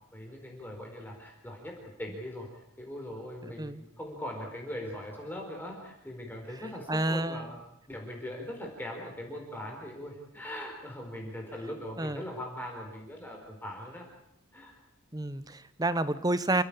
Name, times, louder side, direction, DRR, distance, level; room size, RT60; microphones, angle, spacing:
voice 1, 0.1-2.5 2.8-7.6 7.9-14.0 14.5-14.7, left 1 dB, 10° left, 0 dB, 4.6 m, -40 dB
voice 2, 6.9-7.4 12.0-12.2 15.1-16.6, right 2 dB, 15° right, 14 dB, 1.1 m, -29 dB
29.0 x 16.0 x 8.7 m, 0.80 s
head